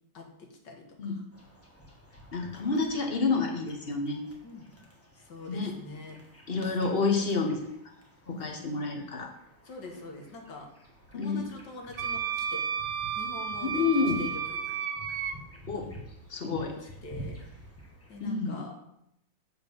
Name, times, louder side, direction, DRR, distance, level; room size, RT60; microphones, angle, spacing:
voice 1, 0.1-1.2 4.4-4.7 5.2-6.2 9.6-10.7 11.1-12.7 13.2-14.8 16.4-16.7 17.0-17.4 18.1-18.8, left 2 dB, 70° left, 2 dB, 1.9 m, -44 dB
sound 1, 1.3-18.3, equal, 10° left, 1.0 m, -50 dB
voice 2, 2.3-4.2 5.5-5.8 6.5-7.6 8.3-9.3 11.1-11.4 13.6-14.3 15.7-15.9 16.3-16.8 18.2-18.6, left 4 dB, 40° left, 2 dB, 1.0 m, -29 dB
Wind instrument woodwind instrument, 12.0-15.3, right 7 dB, 70° right, 1.2 m, -32 dB
7.5 x 4.8 x 5.2 m, 0.78 s
omnidirectional pair, 2.0 m